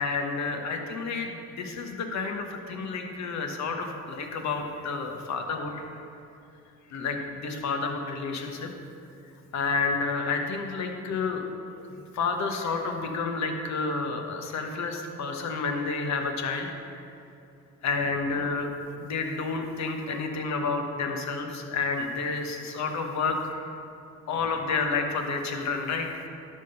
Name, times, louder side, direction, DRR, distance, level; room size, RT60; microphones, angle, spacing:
voice 1, 0.0-5.8 6.9-8.7 9.5-11.4 12.1-17.0 17.8-18.7 18.9-23.6 24.3-26.3, left 4 dB, 65° left, 4 dB, 1.2 m, -30 dB
10.5 x 3.8 x 6.8 m, 2.6 s
cardioid pair, 95°, 30 cm